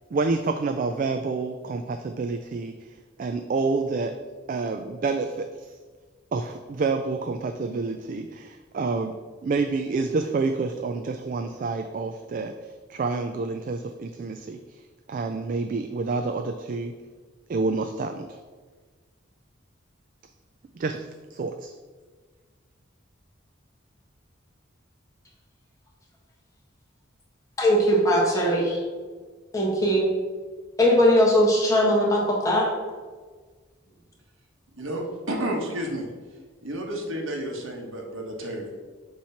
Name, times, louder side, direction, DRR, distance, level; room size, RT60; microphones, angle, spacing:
voice 1, 0.1-2.9 3.2-4.1 4.5-5.8 6.3-14.8 15.1-16.9 17.5-18.4 20.7-21.1 21.3-21.7, right 3 dB, 40° right, 6 dB, 0.3 m, -28 dB
voice 2, 27.6-28.8 29.5-30.1 30.8-32.7, equal, 15° left, -3 dB, 1.4 m, -20 dB
voice 3, 34.8-36.1 36.6-38.8, right 1 dB, 85° right, 1 dB, 1.3 m, -31 dB
7.1 x 3.1 x 5.7 m, 1.4 s
head